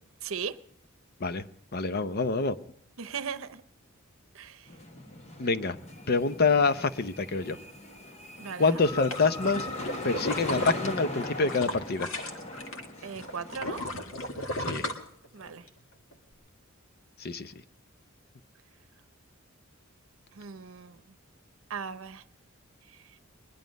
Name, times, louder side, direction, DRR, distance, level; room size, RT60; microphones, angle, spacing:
voice 1, 0.2-0.6 3.0-3.6 4.3-4.7 8.4-8.8 13.0-13.8 15.3-15.7 20.3-21.0 21.7-22.2 22.9-23.2, right 6 dB, 75° right, 0.7 m, -38 dB
voice 2, 1.7-2.6 5.4-5.8 6.1-7.6 8.6-9.7 10.0-12.1 14.6-14.8 17.2-17.5, left 4 dB, 50° left, 0.7 m, -26 dB
sound 1, 4.7-13.9, left 1 dB, 35° left, 1.3 m, -40 dB
sound 2, 8.7-12.9 13.2-15.7 16.1-16.2, left 1 dB, 70° left, 1.8 m, -35 dB
21.5 x 11.5 x 5.2 m
head